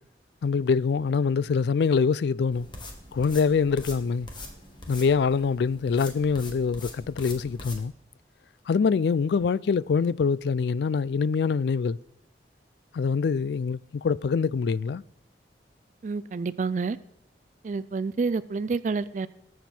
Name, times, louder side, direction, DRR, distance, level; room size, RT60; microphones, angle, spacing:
voice 1, 0.4-2.7 3.1-4.3 4.9-7.9 8.7-12.0 12.9-15.0, left 5 dB, 70° left, 0.3 m, -24 dB
sound 1, 2.5-7.8, left 2 dB, 25° left, 1.7 m, -43 dB
voice 2, 16.0-17.0 17.6-19.3, right 4 dB, 45° right, 0.3 m, -28 dB
19.5 x 7.2 x 4.4 m
head